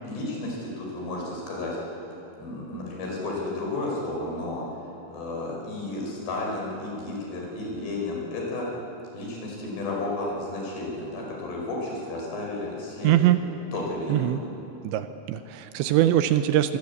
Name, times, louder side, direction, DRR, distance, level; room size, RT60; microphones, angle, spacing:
voice 1, 0.1-1.8 2.4-4.6 5.1-8.7 9.1-13.1 13.7-14.3 15.8-16.0, left 2 dB, 60° left, -1 dB, 6.9 m, -32 dB
voice 2, 13.0-13.4 14.1-14.4 14.8-16.8, right 13 dB, 80° right, 10 dB, 2.9 m, -22 dB
24.5 x 21.0 x 8.3 m, 3.0 s
omnidirectional pair, 5.3 m